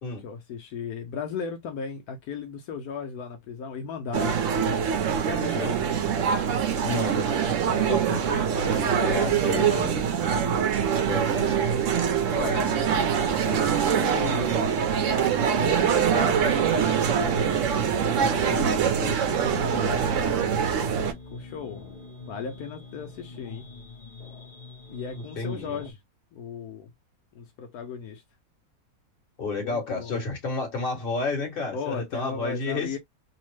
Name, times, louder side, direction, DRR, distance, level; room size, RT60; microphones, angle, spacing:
voice 1, 0.2-4.4 5.2-5.8 8.0-9.9 12.3-14.7 15.1-20.0 21.3-21.8 22.3-23.6 24.9-26.0 26.3-26.9 27.3-28.2 29.6-30.2 31.7-33.0, left 6 dB, 80° left, 1.1 m, -36 dB
sound 1, 4.1-21.1, right 7 dB, 65° right, 0.8 m, -24 dB
voice 2, 6.8-8.5 8.7-10.0 10.9-11.9 23.4-23.6 25.1-25.8 29.4-33.0, left 3 dB, 40° left, 1.3 m, -32 dB
sound 2, 16.3-25.9, left 4 dB, 55° left, 0.5 m, -43 dB
3.0 x 2.0 x 3.1 m
omnidirectional pair, 1.6 m